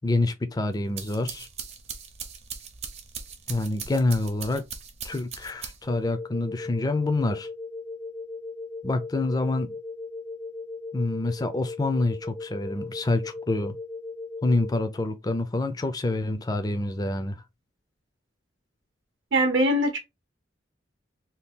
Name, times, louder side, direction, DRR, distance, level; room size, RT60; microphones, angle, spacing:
voice 1, 0.0-1.5 3.5-4.6 5.0-7.5 8.8-9.7 10.9-13.7 14.4-17.4, left 2 dB, 20° left, 0.3 m, -27 dB
sound 1, 0.7-6.0, right 6 dB, 35° right, 0.6 m, -40 dB
sound 2, 5.8-14.8, left 3 dB, 75° left, 0.8 m, -38 dB
voice 2, 19.3-20.0, right 1 dB, 65° right, 0.8 m, -22 dB
2.8 x 2.3 x 3.5 m
head